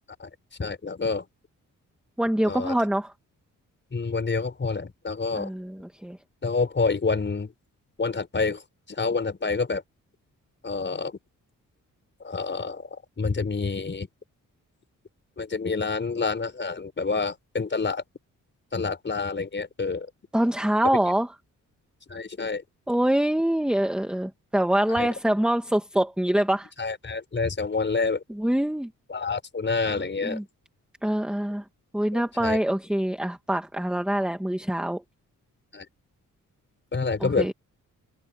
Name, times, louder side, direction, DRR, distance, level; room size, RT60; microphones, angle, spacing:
voice 1, 0.6-1.2 2.4-2.8 3.9-5.5 6.4-7.5 8.0-8.6 8.9-9.8 10.6-11.2 12.2-14.1 15.4-18.0 18.7-20.1 22.1-22.6 24.9-25.1 26.8-28.2 29.1-30.4 32.1-32.6 35.7-35.9 36.9-37.5, left 4 dB, 35° left, 5.0 m, -28 dB
voice 2, 2.2-3.1 5.3-6.2 20.3-21.3 22.9-26.7 28.3-28.9 29.9-30.4 31.0-31.6 31.9-35.0 37.2-37.5, right 1 dB, 5° right, 1.7 m, -25 dB
cardioid pair, 85°, 32 cm